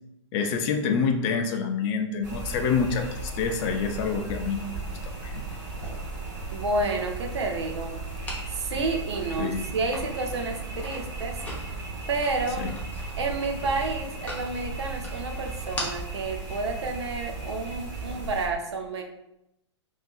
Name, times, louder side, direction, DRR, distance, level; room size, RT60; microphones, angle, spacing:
voice 1, 0.3-4.7 5.0-5.4 9.4-9.6 12.6-12.7, left 5 dB, 30° left, 5 dB, 0.4 m, -27 dB
sound 1, 2.2-18.5, right 3 dB, 30° right, 1.2 m, -36 dB
sound 2, 5.7-18.1, equal, 10° left, 0.9 m, -43 dB
voice 2, 6.5-8.0 8.5-11.8 12.1-12.7 13.2-19.0, right 3 dB, 65° right, 3 dB, 0.7 m, -30 dB
5.2 x 2.7 x 2.5 m, 0.85 s
figure-of-eight pair, 110°, 15 cm